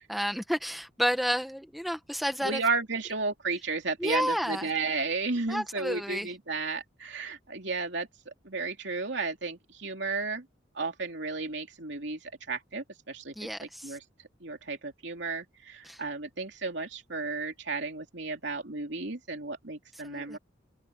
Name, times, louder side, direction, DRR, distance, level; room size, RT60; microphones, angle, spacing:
voice 1, 0.0-2.6 4.0-4.7 5.5-6.3 13.4-14.0 15.8-16.0 20.0-20.4, equal, ahead, 1.4 m, -31 dB
voice 2, 2.4-10.5 10.7-14.0 14.4-20.4, right 3 dB, 65° right, 3.2 m, -33 dB
head